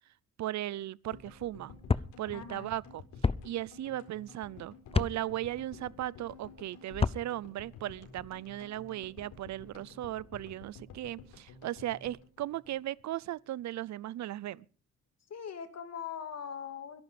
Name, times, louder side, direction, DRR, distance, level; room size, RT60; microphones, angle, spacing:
voice 1, 0.4-1.7 2.2-3.0 3.4-14.7, right 14 dB, 65° right, 0.7 m, -37 dB
sound 1, 1.1-13.3 13.6-13.7 13.8-13.9, left 5 dB, 90° left, 4.4 m, -52 dB
sound 2, 1.9-2.1 3.2-3.4 4.9-5.1 6.9-7.2, left 4 dB, 20° left, 0.7 m, -27 dB
voice 2, 2.3-2.7 15.3-17.0, left 7 dB, 60° left, 2.5 m, -41 dB
21.5 x 11.5 x 5.2 m
cardioid pair, 90°, 30 cm